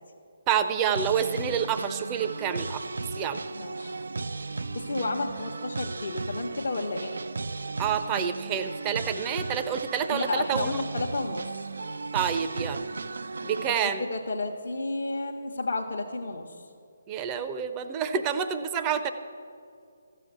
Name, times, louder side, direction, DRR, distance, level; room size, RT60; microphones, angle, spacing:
voice 1, 0.5-2.8 3.1-3.4 7.8-10.9 12.1-12.9 13.4-14.0 17.1-19.1, right 8 dB, 20° right, 9 dB, 0.6 m, -28 dB
sound 1, 0.9-13.7, right 3 dB, 60° right, 0.4 m, -35 dB
voice 2, 3.5-4.0 4.7-7.2 10.1-11.7 13.6-16.6, left 3 dB, 55° left, -1 dB, 1.0 m, -32 dB
13.5 x 7.5 x 8.2 m, 2.4 s
figure-of-eight pair, 140°, 0 cm